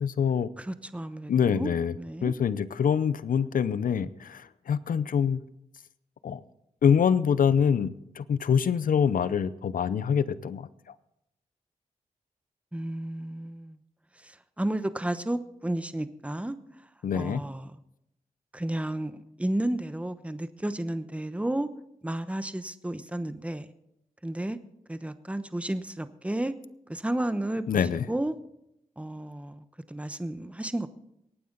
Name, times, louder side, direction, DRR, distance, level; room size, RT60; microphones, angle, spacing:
voice 1, 0.0-0.5 1.3-2.0 2.2-5.4 6.2-6.4 6.8-10.7 17.0-17.4 27.7-28.1, left 7 dB, 70° left, 17 dB, 0.6 m, -25 dB
voice 2, 0.6-1.7 2.0-2.3 12.7-13.8 14.2-16.6 17.1-17.7 18.5-21.7 22.0-23.7 24.2-24.6 24.9-26.5 26.9-28.4 29.0-30.9, right 1 dB, 10° right, 12 dB, 0.9 m, -32 dB
23.0 x 9.2 x 4.0 m, 0.81 s
cardioid pair, 60°, 15 cm